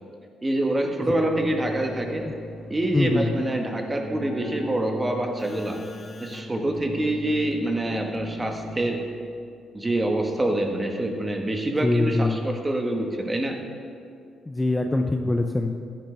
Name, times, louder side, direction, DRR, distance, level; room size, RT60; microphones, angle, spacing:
voice 1, 0.4-2.3 2.7-5.8 6.2-9.0 9.7-13.6, right 1 dB, 20° right, 3 dB, 1.5 m, -26 dB
Keyboard (musical), 1.0-9.3, left 1 dB, 40° left, 1.1 m, -39 dB
voice 2, 2.9-3.4 11.8-12.4 14.5-15.7, left 2 dB, 15° left, 5 dB, 0.5 m, -23 dB
14.0 x 10.0 x 3.5 m, 2.4 s
cardioid pair, 90°, 0 cm